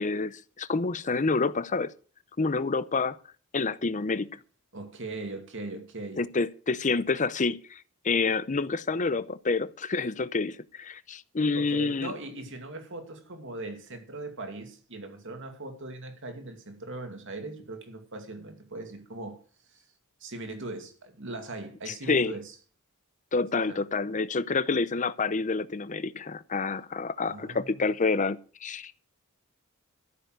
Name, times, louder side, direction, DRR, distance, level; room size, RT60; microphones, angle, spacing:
voice 1, 0.0-1.9 2.4-3.2 3.5-4.4 6.2-12.1 21.9-22.3 23.3-28.9, left 4 dB, 35° left, 0.7 m, -28 dB
voice 2, 4.7-6.2 11.5-19.4 19.7-19.8 20.2-22.6 23.7-23.8 27.2-27.8, right 2 dB, 60° right, 2.5 m, -40 dB
13.5 x 7.0 x 7.7 m
head